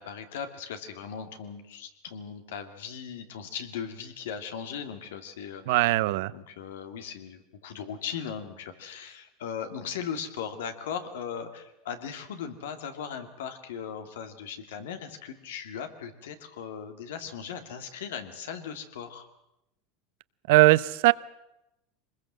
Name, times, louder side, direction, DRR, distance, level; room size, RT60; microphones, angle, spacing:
voice 1, 0.0-5.9 6.3-19.3, left 7 dB, 90° left, 7 dB, 2.5 m, -38 dB
voice 2, 5.7-6.3 20.5-21.1, right 19 dB, 75° right, 17 dB, 0.7 m, -20 dB
24.0 x 21.0 x 7.6 m, 0.88 s
supercardioid pair, 125°, 0 cm